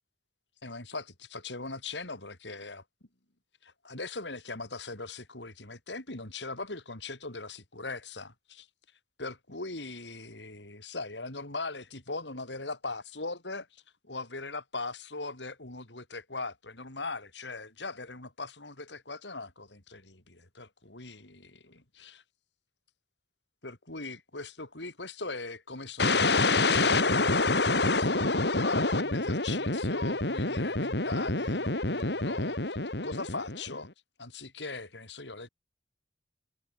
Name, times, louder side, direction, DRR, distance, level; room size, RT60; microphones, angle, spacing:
voice 1, 0.6-2.8 3.6-8.7 9.2-22.2 23.6-33.9 34.2-35.5, left 3 dB, 85° left, 5.4 m, -40 dB
sound 1, 26.0-33.9, left 3 dB, 70° left, 3.0 m, -27 dB
head